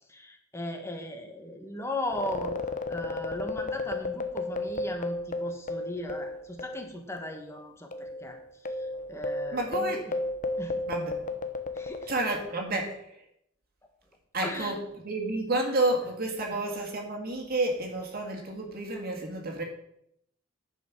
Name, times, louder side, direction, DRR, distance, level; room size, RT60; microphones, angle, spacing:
voice 1, 0.1-2.6 2.9-8.4 8.7-10.1 10.6-10.8 11.7-12.1 14.4-14.8 16.5-16.6, left 1 dB, 15° left, 3 dB, 1.4 m, -37 dB
sound 1, 2.1-6.9 7.2-7.3 7.9-12.7, left 2 dB, 40° left, 0.8 m, -33 dB
voice 2, 9.5-10.0 10.9-11.3 12.1-13.2 14.3-19.6, right 2 dB, 50° right, 1 dB, 1.9 m, -30 dB
10.5 x 5.6 x 6.1 m, 0.76 s
head